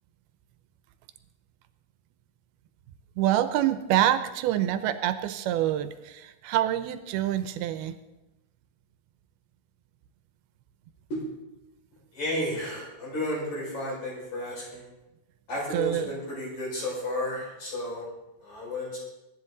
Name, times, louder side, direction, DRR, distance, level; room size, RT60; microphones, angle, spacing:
voice 1, 3.2-8.0 15.7-16.1, right 12 dB, 85° right, 11 dB, 2.6 m, -26 dB
voice 2, 12.1-14.9 15.5-18.0 18.4-19.0, left 1 dB, 50° left, -4 dB, 6.6 m, -32 dB
22.5 x 10.5 x 3.9 m, 0.98 s
omnidirectional pair, 4.4 m